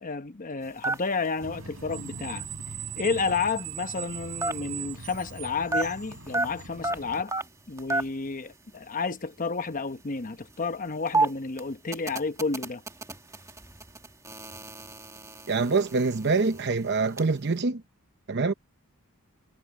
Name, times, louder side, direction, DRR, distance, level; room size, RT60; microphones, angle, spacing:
voice 1, 0.0-2.5 3.0-7.3 7.7-12.8, left 4 dB, 40° left, 0.9 m, -31 dB
sound 1, 0.6-5.4 5.7-8.3 8.5-8.6 8.8-9.1 9.7-17.3, right 2 dB, 15° right, 1.7 m, -32 dB
Screech, 1.4-7.2, right 6 dB, 80° right, 3.7 m, -39 dB
voice 2, 15.5-17.8 18.3-18.5, right 4 dB, 50° right, 0.8 m, -25 dB
head